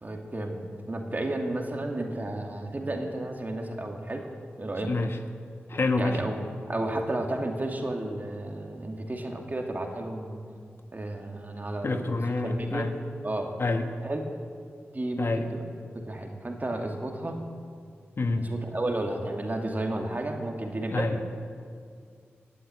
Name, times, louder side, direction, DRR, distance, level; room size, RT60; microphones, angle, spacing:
voice 1, 0.0-0.6 0.9-4.3 4.6-4.9 6.0-6.4 6.7-10.4 10.9-12.1 12.4-12.9 13.2-13.5 14.0-14.2 14.9-15.6 16.0-17.4 18.4-21.2, right 1 dB, 35° right, 2 dB, 2.6 m, -32 dB
voice 2, 4.8-5.2 5.7-6.2 11.8-13.0 13.6-13.8 15.2-15.4 18.2-18.5 20.9-21.2, left 3 dB, 55° left, 6 dB, 1.3 m, -27 dB
18.0 x 7.9 x 9.7 m, 2.2 s
cardioid pair, 45°, 5 cm